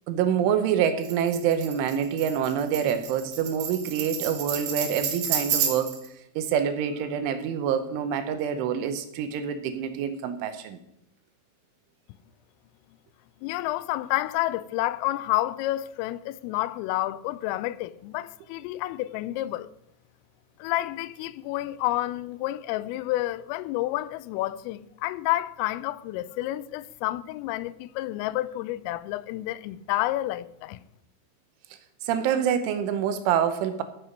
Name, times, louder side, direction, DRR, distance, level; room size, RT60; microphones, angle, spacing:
voice 1, 0.1-6.0 6.4-10.8 32.0-33.8, right 8 dB, 80° right, 3.2 m, -26 dB
Tambourine, 1.0-6.1, right 8 dB, 60° right, 2.4 m, -30 dB
voice 2, 13.4-19.7 20.6-30.8, left 16 dB, 85° left, 3.2 m, -29 dB
15.0 x 7.6 x 5.2 m
omnidirectional pair, 5.8 m